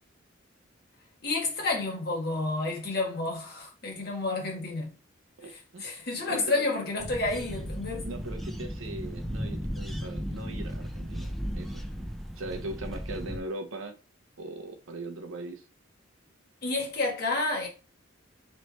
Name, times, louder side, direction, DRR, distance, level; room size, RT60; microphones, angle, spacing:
voice 1, 1.2-4.9 5.8-8.1 16.6-17.7, left 3 dB, 50° left, 1.5 m, -30 dB
voice 2, 5.4-5.9 6.3-6.7 8.0-11.8 12.4-13.9 14.4-15.6, right 2 dB, 75° right, 0.7 m, -40 dB
sound 1, 7.0-13.4, equal, ahead, 0.4 m, -35 dB
3.2 x 3.1 x 4.1 m
head